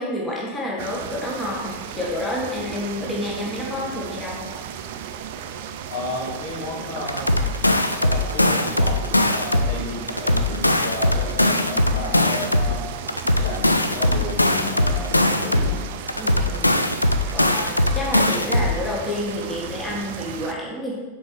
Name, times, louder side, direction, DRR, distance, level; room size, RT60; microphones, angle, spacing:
voice 1, 0.0-4.5 16.2-16.8 17.3-21.0, left 1 dB, 15° left, -4 dB, 1.6 m, -29 dB
sound 1, 0.8-20.5, right 8 dB, 50° right, 0.5 m, -35 dB
voice 2, 5.9-7.4 8.0-12.8 13.4-15.8, left 2 dB, 60° left, -3 dB, 2.1 m, -32 dB
sound 2, 7.1-9.7 10.1-12.7 13.1-15.7 16.1-18.7, left 1 dB, 85° left, 0.4 m, -20 dB
7.2 x 4.5 x 4.8 m, 1.3 s
figure-of-eight pair, 90°, 0 cm